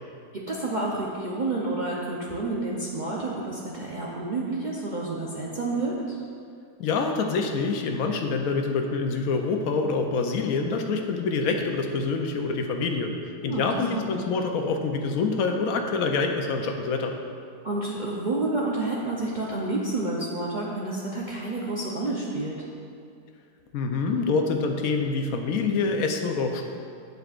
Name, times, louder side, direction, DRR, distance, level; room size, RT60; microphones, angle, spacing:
voice 1, 0.3-6.2 13.4-14.1 17.6-22.6, right 2 dB, 75° right, -5 dB, 0.4 m, -29 dB
voice 2, 6.8-13.1 13.4-17.1 23.7-26.7, left 4 dB, 70° left, 4 dB, 0.9 m, -26 dB
8.0 x 7.9 x 2.5 m, 2.3 s
omnidirectional pair, 1.8 m